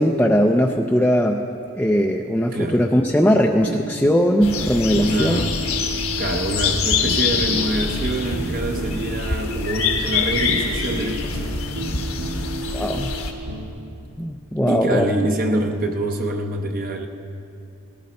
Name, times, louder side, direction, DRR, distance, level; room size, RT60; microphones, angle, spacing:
voice 1, 0.0-1.4 1.7-5.4 12.7-13.1 14.2-15.1, equal, 5° left, 1 dB, 0.4 m, -19 dB
voice 2, 2.5-2.8 4.9-5.6 6.2-11.5 14.7-17.1, right 1 dB, 40° right, 3 dB, 0.7 m, -25 dB
sound 1, 3.6-13.7, equal, 85° right, 1.7 m, -32 dB
sound 2, 4.4-13.3, left 5 dB, 75° left, 1.3 m, -25 dB
19.0 x 13.5 x 4.3 m, 2.6 s
head